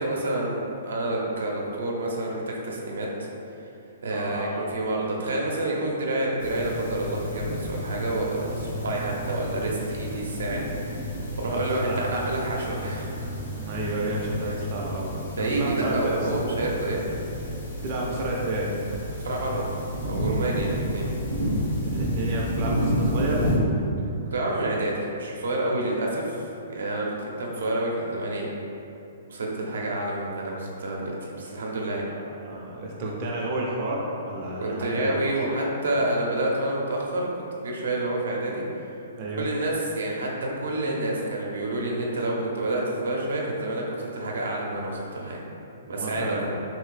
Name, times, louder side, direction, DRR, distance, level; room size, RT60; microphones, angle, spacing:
voice 1, 0.0-3.3 4.0-10.6 11.4-13.3 14.4-14.5 15.4-17.0 19.2-19.6 20.0-21.1 24.3-26.4 26.7-28.5 29.3-32.0 34.6-37.3 37.6-38.6 39.3-40.3 40.6-45.4 45.9-46.6, right 1 dB, 85° right, -2 dB, 0.6 m, -28 dB
voice 2, 4.1-4.8 11.5-12.1 13.6-16.3 17.8-18.7 21.7-23.4 32.1-35.2 39.2-39.5 46.0-46.4, right 2 dB, 35° right, -4 dB, 0.4 m, -31 dB
sound 1, 6.4-23.6, equal, 70° left, 1.1 m, -31 dB
2.8 x 2.6 x 3.2 m, 2.7 s
hypercardioid pair, 160°, 0 cm